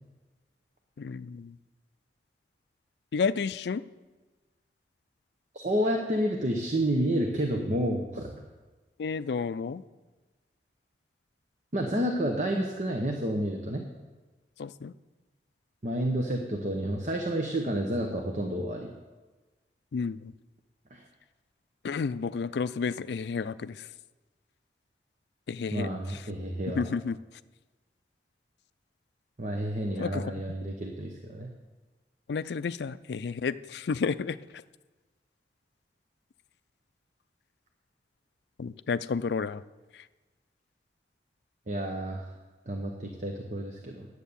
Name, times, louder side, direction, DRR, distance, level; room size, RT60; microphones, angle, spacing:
voice 1, 1.0-1.6 3.1-3.8 9.0-9.8 14.6-14.9 19.9-20.3 21.8-23.9 25.5-25.9 26.7-27.2 30.0-30.3 32.3-34.4 38.6-39.6, left 5 dB, 70° left, 15 dB, 0.4 m, -31 dB
voice 2, 5.5-8.4 11.7-13.8 15.8-18.9 20.9-21.0 25.7-26.9 29.4-31.5 41.7-42.3 42.7-44.1, right 1 dB, 40° right, 2 dB, 0.9 m, -30 dB
10.0 x 8.2 x 7.0 m, 1.2 s
head